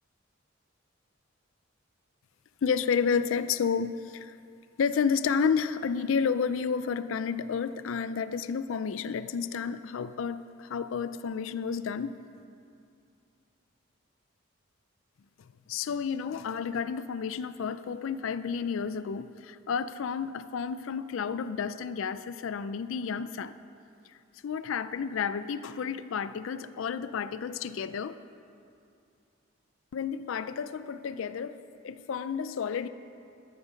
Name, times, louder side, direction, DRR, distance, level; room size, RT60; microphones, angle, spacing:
voice 1, 2.6-4.4 4.8-12.1 15.7-23.6 24.1-24.2 24.4-28.2 29.9-32.9, left 6 dB, 75° left, 14 dB, 0.4 m, -31 dB
12.5 x 8.8 x 6.4 m, 2.5 s
head